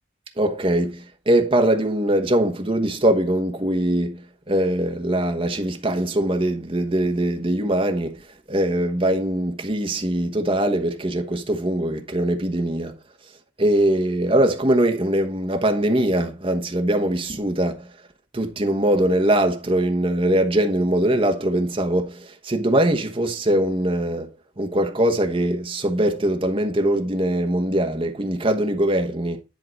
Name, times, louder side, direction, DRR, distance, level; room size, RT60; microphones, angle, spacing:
voice 1, 0.4-4.2 4.5-8.2 8.5-13.0 13.6-17.9 18.3-24.3 24.6-29.4, right 1 dB, 30° right, 1.1 m, -22 dB
10.5 x 3.8 x 4.5 m
head